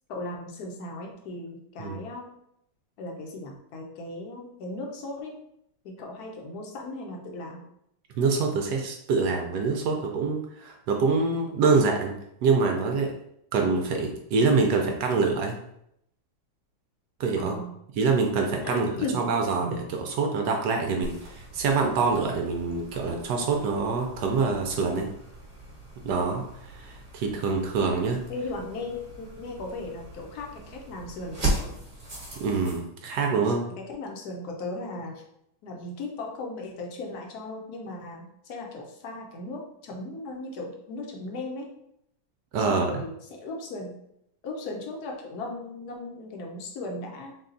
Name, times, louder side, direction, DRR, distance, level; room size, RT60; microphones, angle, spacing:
voice 1, 0.1-2.3 3.0-5.3 5.8-7.6 17.3-17.7 18.6-19.2 28.3-31.7 33.4-35.2 35.6-41.7 42.6-43.9 44.4-47.3, left 2 dB, 60° left, 1 dB, 1.1 m, -37 dB
voice 2, 8.2-12.1 12.4-13.1 13.5-15.6 17.2-17.6 18.0-18.9 19.1-25.1 26.0-26.4 26.7-28.2 32.4-33.6 42.5-42.9, right 4 dB, 70° right, 2 dB, 1.0 m, -25 dB
sound 1, 21.0-32.8, right 2 dB, 25° right, 1.1 m, -38 dB
4.0 x 2.3 x 3.8 m, 0.76 s
omnidirectional pair, 2.1 m